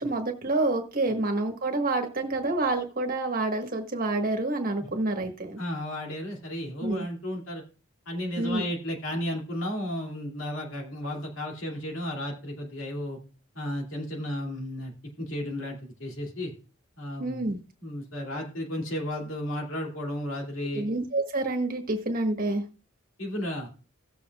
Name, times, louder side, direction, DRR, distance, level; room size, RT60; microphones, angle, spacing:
voice 1, 0.0-5.6 6.8-7.1 8.4-8.6 17.2-17.6 20.7-22.6, right 2 dB, 45° right, 4 dB, 1.4 m, -28 dB
voice 2, 5.6-7.6 8.1-13.2 13.5-16.5 17.0-17.4 17.8-20.8 23.2-23.7, left 1 dB, 70° left, 1 dB, 2.6 m, -33 dB
17.0 x 7.2 x 2.4 m, 0.35 s
head